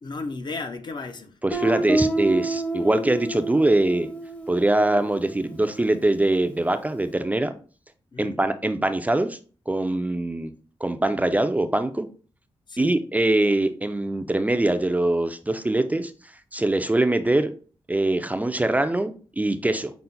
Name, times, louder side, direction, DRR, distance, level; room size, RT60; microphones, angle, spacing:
voice 1, 0.0-1.4 8.1-8.4 12.7-13.0 19.7-19.9, left 3 dB, 50° left, 0.6 m, -34 dB
voice 2, 1.4-4.1 4.5-7.5 8.2-9.4 9.7-10.5 10.8-12.1 12.8-17.5 17.9-19.9, right 2 dB, 15° right, 0.4 m, -23 dB
Guitar, 1.5-6.2, right 2 dB, 15° left, 0.7 m, -29 dB
5.6 x 2.0 x 3.9 m
cardioid pair, 75°, 10 cm